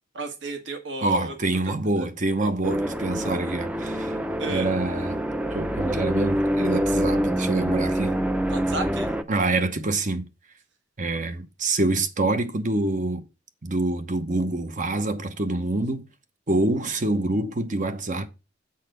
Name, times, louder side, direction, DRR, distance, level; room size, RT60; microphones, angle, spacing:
voice 1, 0.1-1.3 2.0-2.1 2.4-2.5 4.4-4.7 8.5-9.1, right 2 dB, 65° right, 1.7 m, -33 dB
voice 2, 1.0-4.2 4.5-5.2 5.5-8.1 9.3-10.2 11.0-13.2 13.6-16.1 16.5-18.3, right 2 dB, 40° right, 1.0 m, -26 dB
sound 1, 2.6-9.2, equal, 5° right, 0.6 m, -26 dB
7.6 x 4.1 x 6.6 m
head